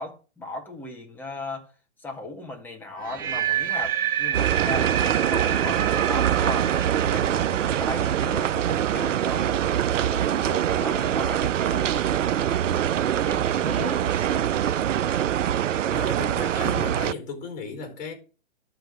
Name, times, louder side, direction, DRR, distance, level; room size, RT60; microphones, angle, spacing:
voice 1, 0.0-1.7 2.0-6.7 7.1-9.7 10.1-12.3 13.0-14.5, left 2 dB, 5° left, 1.7 m, -37 dB
sound 1, 3.0-9.0, right 10 dB, 20° right, 1.8 m, -29 dB
sound 2, 4.3-17.1, right 10 dB, 85° right, 0.5 m, -24 dB
voice 2, 15.9-18.1, left 4 dB, 25° left, 4.5 m, -35 dB
11.5 x 3.9 x 7.6 m
hypercardioid pair, 130°, 37 cm